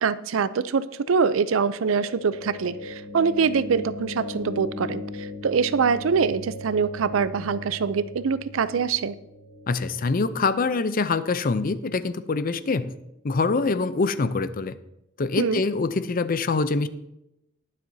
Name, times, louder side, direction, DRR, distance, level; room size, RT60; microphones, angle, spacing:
voice 1, 0.0-9.1 15.4-15.6, right 5 dB, 85° right, 16 dB, 0.5 m, -24 dB
sound 1, 0.8-12.9, left 2 dB, 60° left, 2.6 m, -39 dB
voice 2, 9.7-12.9 13.2-14.7 15.2-16.9, left 3 dB, 45° left, 13 dB, 0.5 m, -24 dB
20.5 x 7.5 x 2.7 m, 0.86 s
head